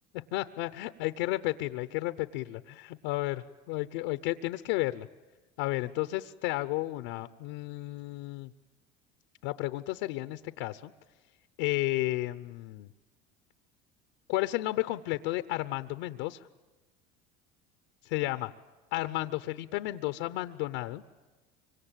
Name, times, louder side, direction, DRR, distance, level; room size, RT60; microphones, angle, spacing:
voice 1, 0.3-5.1 5.6-8.5 9.4-10.9 11.6-12.9 14.3-16.5 18.0-18.5 18.9-21.0, left 18 dB, 85° left, 11 dB, 0.9 m, -32 dB
25.0 x 25.0 x 9.1 m, 1.2 s
supercardioid pair, 120°, 21 cm